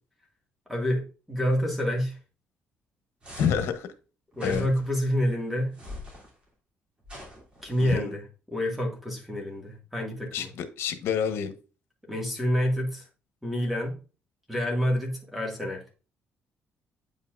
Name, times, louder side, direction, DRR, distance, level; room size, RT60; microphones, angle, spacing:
voice 1, 0.7-2.2 4.4-5.7 7.6-8.2 8.5-10.5 12.1-13.1 13.4-14.0 14.5-15.8, equal, 5° right, 1.9 m, -28 dB
sound 1, 3.2-3.7 4.3-5.0 5.7-6.3 7.0-7.9, left 1 dB, 25° right, 3.0 m, -42 dB
voice 2, 3.4-3.9 4.4-4.7 7.8-8.1 10.3-11.5, left 8 dB, 80° left, 1.1 m, -28 dB
8.5 x 5.6 x 2.5 m
cardioid pair, 140°, 4 cm